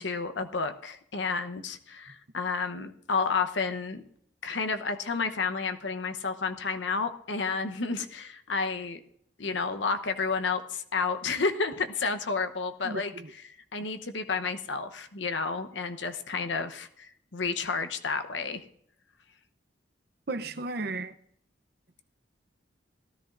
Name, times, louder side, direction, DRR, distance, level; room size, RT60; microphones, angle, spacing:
voice 1, 0.0-4.0 4.4-9.0 9.4-13.1 13.5-18.6, left 4 dB, 70° left, 0.9 m, -31 dB
voice 2, 12.8-13.3 20.3-21.1, right 2 dB, 55° right, 0.7 m, -34 dB
17.5 x 13.5 x 2.6 m
head